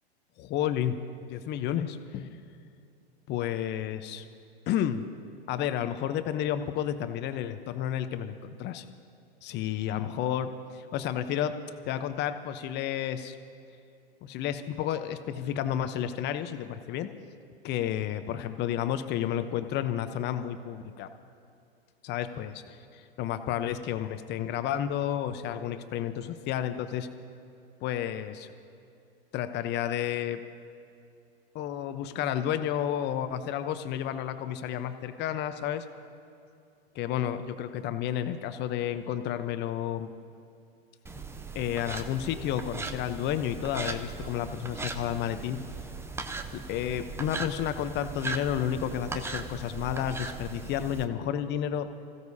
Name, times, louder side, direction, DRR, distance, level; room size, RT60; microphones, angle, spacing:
voice 1, 0.4-0.9 1.3-2.4 3.3-4.2 4.7-5.1 5.5-8.8 9.4-11.5 11.8-13.4 14.2-17.1 17.6-21.1 22.0-27.1 27.8-28.5 29.3-30.4 31.5-35.9 36.9-40.1 41.5-45.6 46.5-51.9, left 10 dB, 35° left, 10 dB, 0.9 m, -31 dB
sound 1, 41.1-51.1, right 3 dB, 10° right, 0.6 m, -38 dB
25.5 x 15.5 x 2.8 m, 2.5 s
hypercardioid pair, 110°, 32 cm